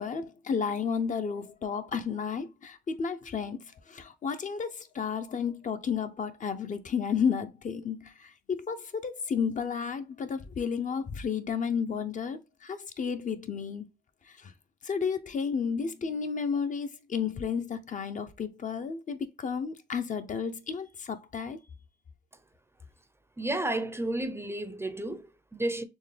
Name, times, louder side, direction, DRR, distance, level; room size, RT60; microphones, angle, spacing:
voice 1, 0.0-13.9 14.3-14.5 14.8-21.6, left 6 dB, 50° left, 0.6 m, -32 dB
voice 2, 23.4-25.8, right 1 dB, 15° right, 0.5 m, -32 dB
4.5 x 3.3 x 3.2 m
wide cardioid pair, 125°, 17 cm